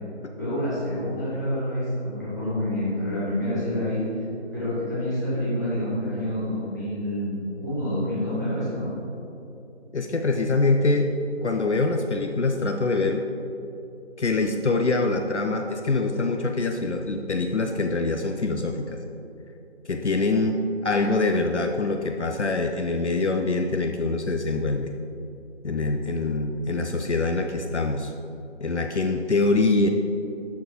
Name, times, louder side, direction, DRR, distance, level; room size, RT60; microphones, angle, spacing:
voice 1, 0.4-4.0 4.5-8.9, left 1 dB, 15° left, -13 dB, 1.6 m, -27 dB
voice 2, 9.9-11.1 11.4-13.3 14.2-19.0 19.9-24.9 25.6-28.1 28.6-29.9, left 3 dB, 70° left, 5 dB, 0.6 m, -24 dB
12.5 x 4.4 x 3.0 m, 2.9 s
figure-of-eight pair, 170°, 35 cm